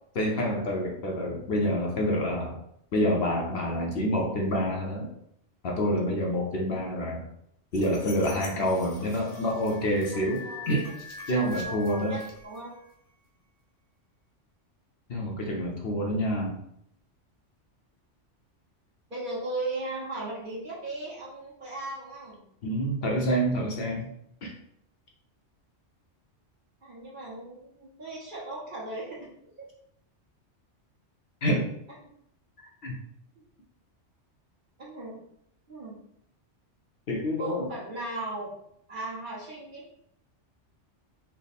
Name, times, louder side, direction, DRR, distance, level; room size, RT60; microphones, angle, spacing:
voice 1, 0.2-2.6 2.9-5.1 5.6-7.2 7.7-10.8 11.3-12.2 15.1-16.6 22.6-24.1 24.4-24.5 31.4-31.7 32.8-32.9 37.1-37.7, equal, 60° left, -1 dB, 0.8 m, -27 dB
sound 1, 7.7-12.9, left 1 dB, 85° left, 1.1 m, -43 dB
voice 2, 10.1-10.9 11.3-12.7 19.1-22.4 26.8-29.3 29.6-29.7 31.9-32.1 33.4-33.5 34.8-35.2 35.7-36.0 37.4-38.5 38.9-39.9, right 2 dB, 45° right, -5 dB, 1.2 m, -37 dB
3.4 x 2.0 x 4.0 m, 0.72 s
omnidirectional pair, 1.2 m